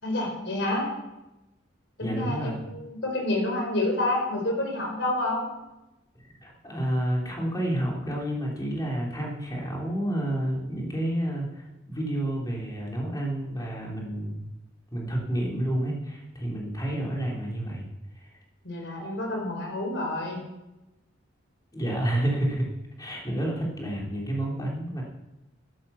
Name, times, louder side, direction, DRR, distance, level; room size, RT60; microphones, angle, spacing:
voice 1, 0.0-0.9 2.0-5.5 18.6-20.4, left 2 dB, 65° left, 1 dB, 5.0 m, -28 dB
voice 2, 2.0-2.5 6.1-14.5 14.9-17.9 18.1-18.3 21.7-22.7 23.0-25.0, right 1 dB, 20° left, -2 dB, 3.4 m, -30 dB
12.5 x 11.5 x 7.1 m, 0.98 s
head